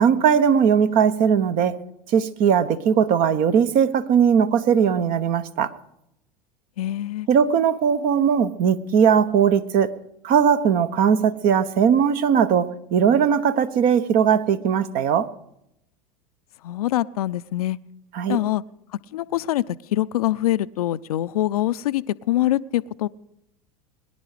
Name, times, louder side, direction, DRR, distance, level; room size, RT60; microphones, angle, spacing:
voice 1, 0.0-1.8 2.1-5.7 7.3-9.9 10.2-15.3 18.1-18.4, right 7 dB, 45° right, 13 dB, 1.2 m, -19 dB
voice 2, 6.8-7.3 16.6-17.8 18.3-18.6 19.1-23.1, left 14 dB, 70° left, 15 dB, 0.6 m, -24 dB
22.5 x 11.0 x 5.0 m, 0.82 s
hypercardioid pair, 85°, 19 cm